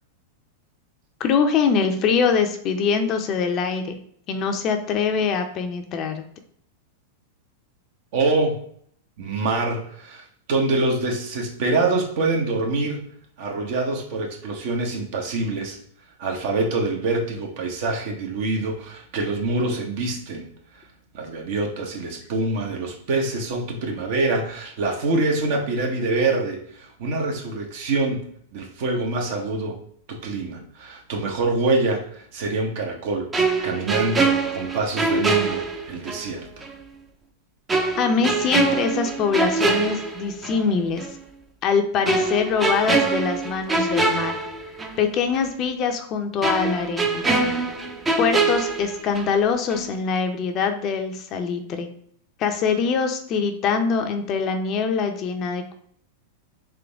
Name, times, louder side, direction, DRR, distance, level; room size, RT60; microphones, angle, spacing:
voice 1, 1.2-4.0 4.3-6.2 38.0-41.1 41.6-44.3 45.0-47.2 48.2-51.9 52.4-55.7, left 6 dB, 40° left, 6 dB, 0.6 m, -23 dB
voice 2, 8.1-8.6 9.2-10.2 10.5-13.0 13.4-15.8 16.2-20.5 21.1-28.2 28.5-29.8 30.1-33.3 33.6-35.6 35.9-36.5, right 3 dB, 60° right, 1 dB, 1.0 m, -25 dB
sound 1, 33.3-36.3 36.6-36.7 37.7-40.7 41.0-41.2 42.1-45.1 45.3-45.5 46.4-49.4 49.7-49.9, right 3 dB, 15° right, 0.6 m, -24 dB
3.7 x 3.0 x 3.5 m, 0.62 s
hypercardioid pair, 100°, 0 cm